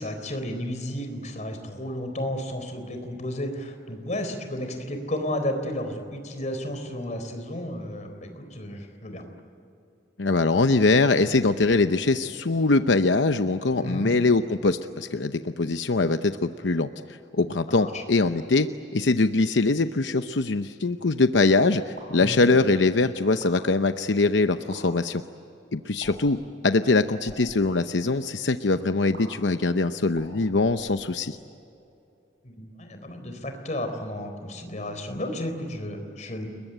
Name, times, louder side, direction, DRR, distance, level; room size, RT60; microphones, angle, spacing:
voice 1, 0.0-9.2 13.8-14.1 17.7-18.0 22.2-22.5 32.4-36.5, left 1 dB, 40° left, 6 dB, 4.0 m, -32 dB
voice 2, 10.2-16.9 17.4-25.2 25.7-26.4 26.6-31.4, left 3 dB, 90° left, 9 dB, 0.8 m, -22 dB
blip-plock-pop, 21.9-22.2 23.2-23.5 24.6-24.8 26.0-26.3 27.1-27.4 29.1-29.2 30.1-31.3, right 2 dB, 75° right, 7.9 m, -45 dB
29.5 x 21.5 x 9.1 m, 2.6 s
head